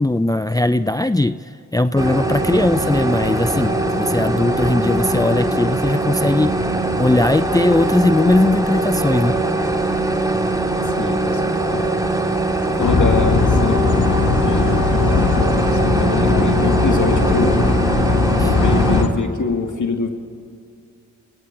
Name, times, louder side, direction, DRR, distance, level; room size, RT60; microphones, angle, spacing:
voice 1, 0.0-1.4 1.7-6.6 7.0-9.4 18.4-18.5, left 2 dB, 10° left, 11 dB, 0.6 m, -18 dB
sound 1, 2.0-19.0, right 2 dB, 10° right, 2.9 m, -21 dB
voice 2, 11.0-11.9 12.8-13.8 14.3-17.6 18.4-20.1, left 4 dB, 60° left, 4 dB, 2.6 m, -24 dB
sound 2, 12.8-19.1, left 4 dB, 85° left, 2.0 m, -19 dB
26.0 x 18.0 x 7.7 m, 2.3 s
cardioid pair, 45°, 33 cm